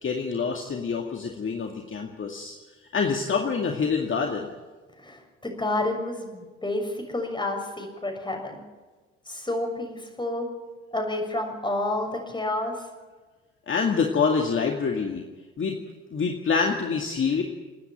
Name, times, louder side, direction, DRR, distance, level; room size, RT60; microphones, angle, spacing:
voice 1, 0.0-2.5 2.9-4.5 13.7-15.2 15.6-15.8 16.1-17.4, left 5 dB, 40° left, 2 dB, 2.3 m, -26 dB
voice 2, 5.0-8.6 9.3-10.5 10.9-12.7, left 2 dB, 15° left, 3 dB, 6.7 m, -29 dB
29.5 x 9.8 x 9.2 m, 1.3 s
hypercardioid pair, 55°, 31 cm